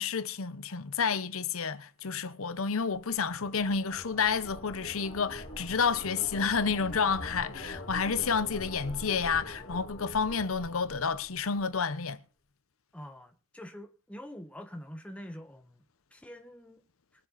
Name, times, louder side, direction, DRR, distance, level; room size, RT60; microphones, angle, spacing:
voice 1, 0.0-12.2, left 5 dB, 80° left, 0.8 m, -30 dB
sound 1, 2.8-11.8, left 1 dB, 50° left, 4.2 m, -44 dB
voice 2, 12.9-15.8 16.1-16.8, equal, 5° left, 1.1 m, -45 dB
23.0 x 7.7 x 4.0 m
head